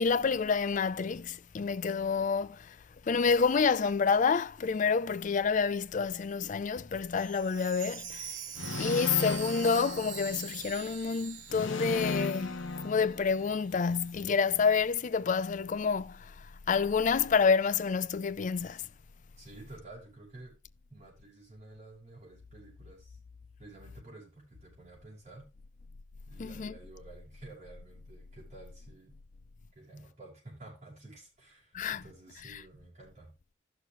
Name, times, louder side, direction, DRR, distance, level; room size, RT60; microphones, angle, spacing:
voice 1, 0.0-2.8 3.0-8.4 8.8-18.9 26.4-26.8 31.7-32.0 32.5-32.6, left 5 dB, 40° left, 0.4 m, -28 dB
Chime, 7.1-13.0 13.4-13.5 14.0-14.1, right 8 dB, 70° right, 1.2 m, -44 dB
sound 1, 8.6-10.7 11.5-13.7, left 3 dB, 70° left, 0.8 m, -36 dB
voice 2, 19.4-20.6 20.9-23.2 23.6-25.5 26.3-29.1 29.7-33.3, right 2 dB, 35° right, 6.2 m, -51 dB
14.5 x 6.4 x 3.2 m
head